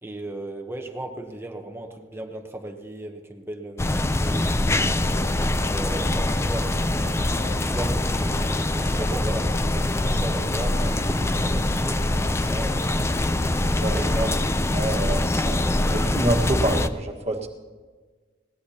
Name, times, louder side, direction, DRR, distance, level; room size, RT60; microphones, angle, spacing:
voice 1, 0.0-5.0 5.7-13.5 13.9-14.5 14.8-15.1, right 1 dB, 15° right, 4 dB, 0.9 m, -36 dB
sound 1, 3.8-16.9, left 1 dB, 15° left, 0.5 m, -24 dB
sound 2, 4.4-14.4, left 1 dB, 80° left, 1.8 m, -42 dB
voice 2, 13.8-14.3 14.7-15.6 15.9-17.5, right 1 dB, 35° right, 2 dB, 1.5 m, -27 dB
21.0 x 18.5 x 2.9 m, 1.4 s
head